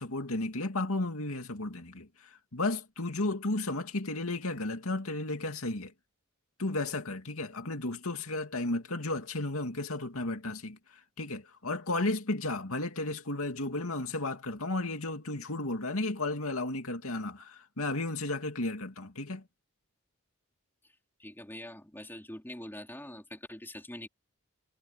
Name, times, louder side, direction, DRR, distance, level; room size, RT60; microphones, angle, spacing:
voice 1, 0.0-5.9 6.6-19.4, left 2 dB, 75° left, 2.5 m, -33 dB
voice 2, 21.2-24.1, left 1 dB, 10° left, 3.7 m, -44 dB
head